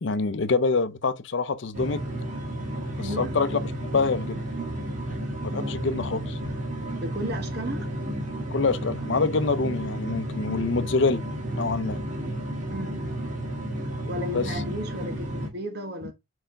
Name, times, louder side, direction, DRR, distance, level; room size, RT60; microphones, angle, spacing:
voice 1, 0.0-2.0 3.0-4.4 5.4-6.4 8.5-11.2 11.5-12.0 14.3-14.5, left 4 dB, 60° left, 0.6 m, -26 dB
sound 1, 1.7-15.5, right 1 dB, 40° right, 2.1 m, -32 dB
voice 2, 3.0-3.4 7.0-7.9 12.7-13.0 14.0-16.1, equal, 55° right, 1.6 m, -34 dB
4.9 x 4.3 x 5.2 m
head